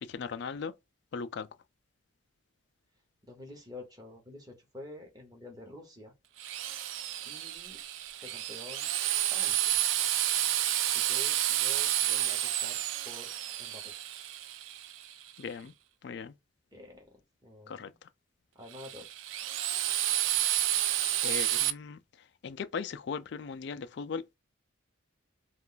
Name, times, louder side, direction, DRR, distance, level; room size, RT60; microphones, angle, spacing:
voice 1, 0.0-0.7 1.1-1.5 15.4-15.7 16.0-16.3 17.7-17.9 21.2-22.0 22.4-24.4, left 5 dB, 55° left, 0.3 m, -38 dB
voice 2, 3.3-6.1 7.2-7.8 8.2-8.9 9.3-9.8 10.9-13.3 13.6-14.0 16.7-17.1 17.4-18.0 18.5-19.1, left 1 dB, 20° right, 0.9 m, -49 dB
Drill, 6.4-15.3 18.7-21.7, right 12 dB, 70° right, 0.3 m, -30 dB
2.4 x 2.2 x 3.7 m
head